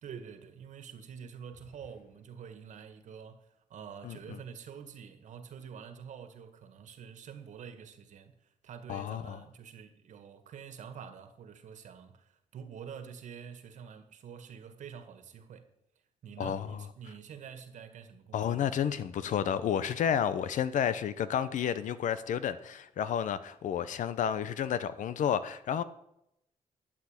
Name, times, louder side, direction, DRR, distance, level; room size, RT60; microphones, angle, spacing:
voice 1, 0.0-15.7 16.2-18.7, right 7 dB, 75° right, 1.9 m, -47 dB
voice 2, 8.9-9.4 16.4-16.6 18.3-25.8, left 9 dB, 90° left, 1.0 m, -31 dB
12.5 x 8.7 x 8.8 m
wide cardioid pair, 150°, 13 cm